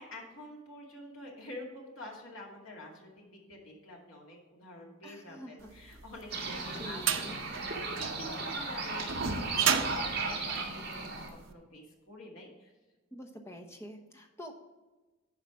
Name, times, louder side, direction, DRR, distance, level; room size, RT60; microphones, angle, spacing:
voice 1, 0.0-12.7, left 1 dB, 70° left, -1 dB, 2.3 m, -48 dB
voice 2, 5.0-5.7 6.7-7.4 13.1-14.5, equal, 15° left, 2 dB, 0.9 m, -46 dB
sound 1, 6.0-11.3, right 7 dB, 65° right, 0.7 m, -33 dB
sound 2, 6.3-11.3, right 3 dB, 50° right, 1.9 m, -36 dB
11.0 x 5.0 x 4.9 m, 1.2 s
head